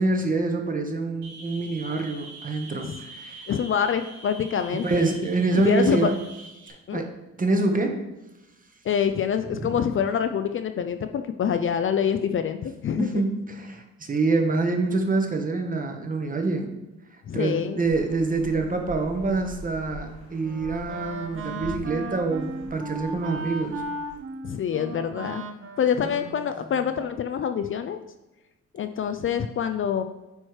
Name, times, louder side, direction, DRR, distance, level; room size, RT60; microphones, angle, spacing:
voice 1, 0.0-3.4 4.8-6.2 6.9-7.1 7.4-8.0 9.6-9.8 13.0-16.8 17.3-23.8 26.0-26.1, right 3 dB, 25° right, 4 dB, 1.1 m, -26 dB
sound 1, 1.2-6.7, right 3 dB, 70° right, 1.7 m, -44 dB
voice 2, 3.5-5.1 5.5-6.1 6.9-7.0 8.8-13.2 17.3-17.8 24.4-25.4 25.8-28.0 28.7-30.0, left 8 dB, 45° left, 9 dB, 0.4 m, -26 dB
sound 2, 17.8-24.2, left 2 dB, 90° left, 2.1 m, -44 dB
Wind instrument woodwind instrument, 19.9-27.0, right 2 dB, 45° right, 0.8 m, -37 dB
8.7 x 3.1 x 4.8 m, 0.99 s
cardioid pair, 90°, 30 cm